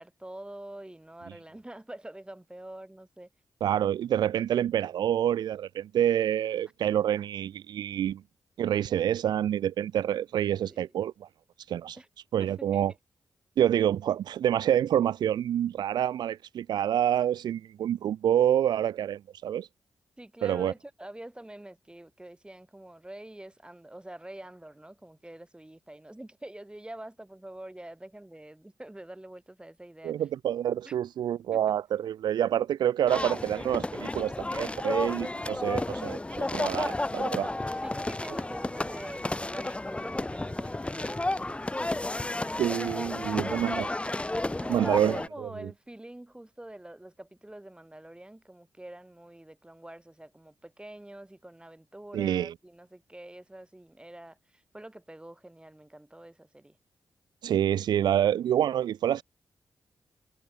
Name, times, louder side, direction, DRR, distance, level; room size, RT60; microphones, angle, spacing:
voice 1, 0.0-3.3 10.6-10.9 12.0-12.1 12.4-12.9 20.2-30.2 30.8-31.0 31.5-31.8 37.8-42.7 43.0-44.0 44.4-56.8, right 1 dB, 15° right, 7.1 m, -46 dB
voice 2, 3.6-8.2 8.6-11.3 11.7-12.0 12.3-12.9 13.6-19.7 20.4-20.7 30.0-37.5 42.6-43.9 44.7-45.2 52.1-52.5 57.4-59.2, right 10 dB, 85° right, 0.5 m, -27 dB
sound 1, 33.1-45.3, left 2 dB, 15° left, 0.6 m, -32 dB
cardioid pair, 55°, 7 cm